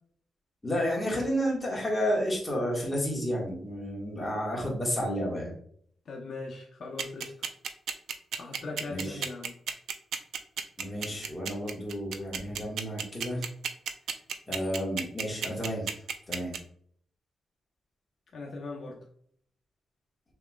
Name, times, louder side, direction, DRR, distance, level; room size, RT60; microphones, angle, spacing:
voice 1, 0.6-5.5 8.9-9.2 10.8-13.5 14.5-15.9 16.3-16.5, equal, 10° left, -4 dB, 1.5 m, -31 dB
voice 2, 6.1-7.3 8.3-9.6 18.3-19.0, left 3 dB, 50° left, -2 dB, 0.8 m, -40 dB
sound 1, 7.0-16.6, right 7 dB, 80° right, 0.4 m, -32 dB
6.3 x 3.0 x 2.3 m, 0.62 s
wide cardioid pair, 150°, 0 cm